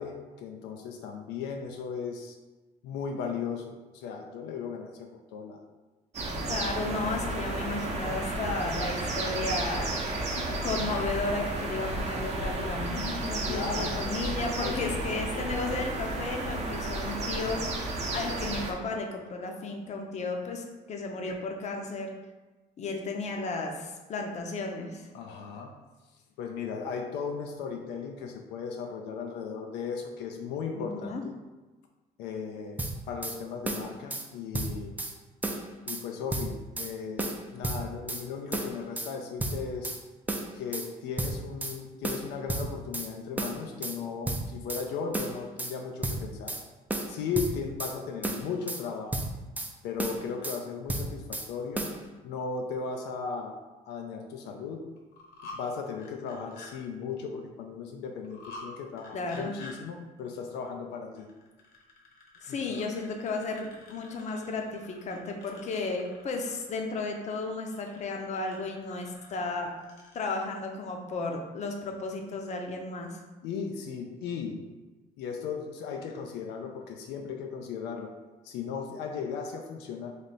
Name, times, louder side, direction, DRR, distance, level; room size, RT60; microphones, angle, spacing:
voice 1, 0.0-2.4 2.8-5.6 13.4-14.2 14.6-15.0 25.1-25.7 26.4-31.3 32.2-35.0 35.9-39.9 40.5-46.6 47.1-49.3 49.8-51.9 52.2-53.6 53.9-54.8 55.5-61.3 62.5-62.9 73.4-74.6 75.2-78.1 78.4-80.1, left 5 dB, 90° left, 3 dB, 0.5 m, -36 dB
sound 1, 6.1-18.7, right 2 dB, 40° right, 0.7 m, -32 dB
voice 2, 6.5-10.0 10.3-22.1 22.8-25.1 30.7-31.2 59.1-59.5 62.4-69.7 70.1-73.2, left 3 dB, 45° left, 2 dB, 0.6 m, -34 dB
sound 2, 32.8-33.4 33.7-34.3 34.5-35.1 35.4-36.0 36.3-36.9 37.2-38.2 38.5-39.1 39.4-40.0 40.3-40.9 41.2-41.8 42.0-43.1 43.4-44.0 44.3-44.9 45.1-45.7 46.0-46.6 46.9-48.0 48.2-48.8 49.1-49.7 50.0-50.6 50.9-51.5 51.8-52.0, right 2 dB, 10° right, 0.4 m, -32 dB
sound 3, 55.0-55.6 55.9-56.7 58.2-58.7 59.0-59.7 61.2-70.4, left 3 dB, 65° left, 1.1 m, -49 dB
3.3 x 2.7 x 4.1 m, 1.2 s
cardioid pair, 110°, 17 cm